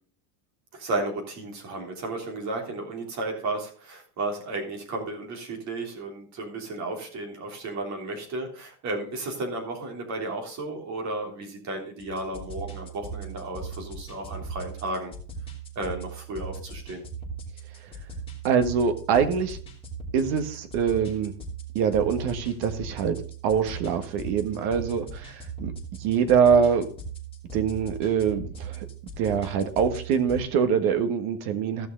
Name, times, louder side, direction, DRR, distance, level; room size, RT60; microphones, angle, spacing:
voice 1, 0.7-15.1 15.8-17.0, right 2 dB, 35° right, 2 dB, 3.4 m, -33 dB
sound 1, 12.0-30.4, right 4 dB, 10° left, 3.2 m, -39 dB
voice 2, 18.4-19.6 20.1-21.3 21.8-25.7 26.0-26.9 27.5-28.9 29.2-31.9, right 7 dB, 55° right, 9 dB, 1.7 m, -24 dB
15.5 x 6.4 x 3.8 m, 0.43 s
cardioid pair, 155°, 47 cm